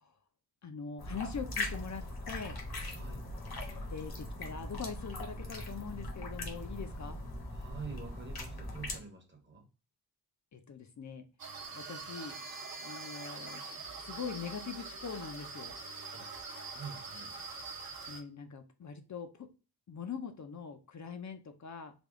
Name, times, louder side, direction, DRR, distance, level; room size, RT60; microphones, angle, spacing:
voice 1, 0.6-2.6 3.9-7.2 10.5-11.3 11.7-12.4 12.8-13.6 14.0-15.7 18.1-19.5 19.9-21.9, left 6 dB, 45° left, 7 dB, 0.5 m, -42 dB
sound 1, 1.0-9.0, left 1 dB, 60° left, 1.0 m, -40 dB
voice 2, 2.9-3.2 7.5-9.7 16.1-16.3 16.7-17.4, right 5 dB, 25° right, 3 dB, 0.9 m, -46 dB
sound 2, 11.4-18.2, right 4 dB, 55° right, 0.9 m, -44 dB
3.4 x 2.3 x 3.5 m, 0.33 s
wide cardioid pair, 160°, 41 cm